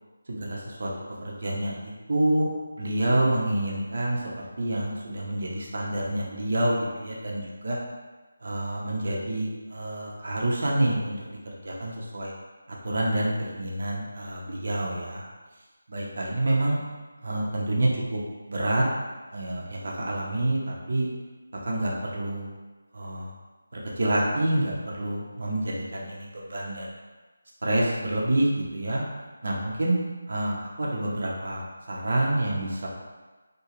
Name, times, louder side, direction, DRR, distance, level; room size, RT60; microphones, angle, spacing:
voice 1, 0.3-0.9 1.2-2.5 2.8-4.2 4.6-7.8 8.4-11.2 11.6-12.3 12.8-15.2 15.9-16.8 17.2-18.2 18.5-18.8 19.3-21.1 21.6-22.5 22.9-23.3 23.7-26.9 27.6-29.0 29.4-30.0 30.3-32.9, right 1 dB, 55° right, -3 dB, 0.7 m, -27 dB
2.8 x 2.3 x 3.0 m, 1.2 s
figure-of-eight pair, 170°, 0 cm